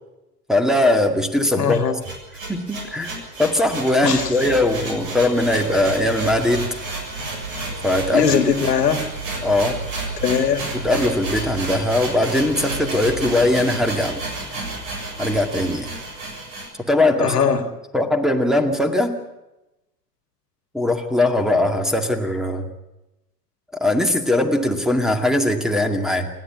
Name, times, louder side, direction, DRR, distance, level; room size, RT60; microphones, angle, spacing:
voice 1, 0.5-1.8 2.5-6.7 7.8-8.3 9.4-9.8 10.7-14.2 15.2-15.9 16.8-17.4 17.9-19.1 20.7-22.7 23.8-26.3, left 1 dB, ahead, 7 dB, 2.2 m, -20 dB
voice 2, 1.6-2.0 4.0-4.3 8.1-9.0 10.2-10.8 17.2-17.6, left 7 dB, 75° left, 10 dB, 1.8 m, -20 dB
sound 1, 1.7-16.7, right 2 dB, 50° right, 7.0 m, -30 dB
28.5 x 11.0 x 9.7 m, 0.99 s
figure-of-eight pair, 80°, 48 cm